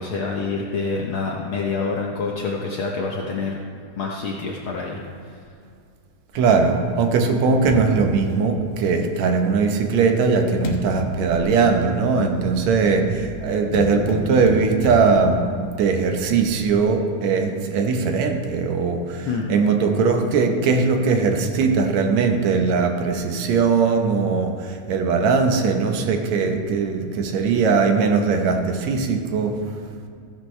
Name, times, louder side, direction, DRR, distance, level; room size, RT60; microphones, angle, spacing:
voice 1, 0.0-3.5 4.0-5.0 19.3-19.5, left 4 dB, 85° left, -1 dB, 1.1 m, -26 dB
sound 1, 6.3-9.2 9.9-16.9, left 3 dB, 70° left, 2.3 m, -34 dB
voice 2, 6.3-29.6, right 4 dB, 70° right, 4 dB, 2.1 m, -20 dB
15.5 x 11.0 x 3.2 m, 2.2 s
omnidirectional pair, 3.6 m